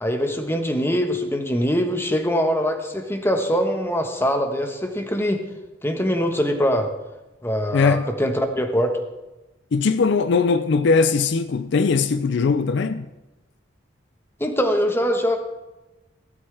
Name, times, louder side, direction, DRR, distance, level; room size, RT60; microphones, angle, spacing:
voice 1, 0.0-5.4 5.8-6.9 7.4-8.9 14.4-15.4, equal, 10° left, 1.2 m, -23 dB
voice 2, 7.7-8.1 9.7-13.1, left 4 dB, 65° left, 0.4 m, -20 dB
16.0 x 12.0 x 3.4 m
head